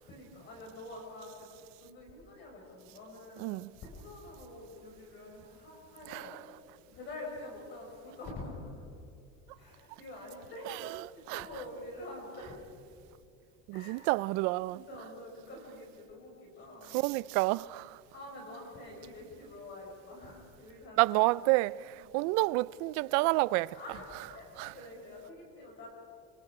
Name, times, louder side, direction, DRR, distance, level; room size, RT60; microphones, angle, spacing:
voice 1, 0.0-1.5 1.8-6.4 6.9-8.8 9.5-12.6 13.7-14.1 14.7-17.0 18.1-21.1 21.4-21.5 22.0-22.3 23.7-25.9, left 2 dB, 35° left, 5.1 m, -46 dB
voice 2, 3.4-3.7 6.1-6.4 10.7-11.5 13.7-14.8 16.9-18.0 21.0-23.8 24.6-24.7, right 21 dB, 65° right, 0.5 m, -29 dB
27.5 x 25.5 x 4.9 m
cardioid pair, 170°, 31 cm